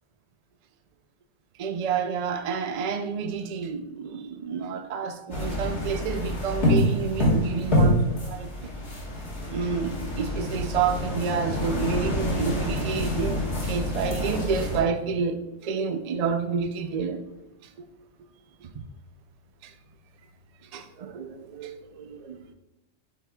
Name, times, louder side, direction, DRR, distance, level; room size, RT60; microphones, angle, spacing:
voice 1, 1.6-8.7 9.5-17.2 17.8-17.9 18.6-18.7 19.6-19.7 20.7-22.4, right 6 dB, 70° right, 0.3 m, -29 dB
sound 1, 5.3-14.8, left 1 dB, 60° left, 2.2 m, -27 dB
9.2 x 4.5 x 2.3 m
omnidirectional pair, 1.3 m